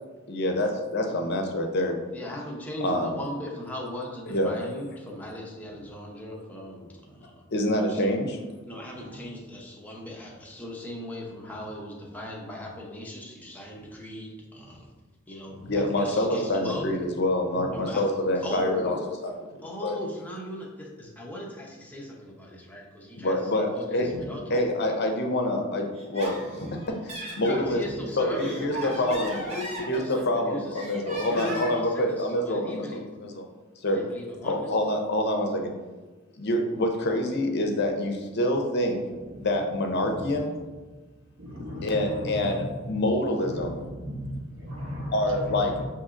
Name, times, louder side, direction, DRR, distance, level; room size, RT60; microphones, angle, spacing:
voice 1, 0.3-2.0 2.8-3.2 4.3-4.6 7.5-8.4 15.7-19.0 19.2-19.3 19.6-20.0 23.2-24.1 24.5-26.7 27.0-27.8 28.1-29.4 29.9-33.4 33.8-34.0 34.4-35.7 36.4-39.0 39.4-40.5 41.8-43.8 45.1-45.7, left 1 dB, 55° left, 3 dB, 0.6 m, -26 dB
voice 2, 2.1-7.4 7.7-8.2 8.7-14.9 15.3-15.6 15.9-16.9 17.7-18.0 18.4-19.1 19.6-24.7 27.4-30.9 31.2-33.1 33.9-34.7, left 1 dB, 10° left, -2 dB, 0.7 m, -38 dB
Laughter, 25.9-27.7 28.2-30.4 30.8-31.9, right 1 dB, 30° right, 0.9 m, -38 dB
voice 3, 41.4-43.0 43.5-45.8, equal, 70° right, -1 dB, 1.0 m, -36 dB
6.7 x 2.8 x 2.5 m, 1.3 s
head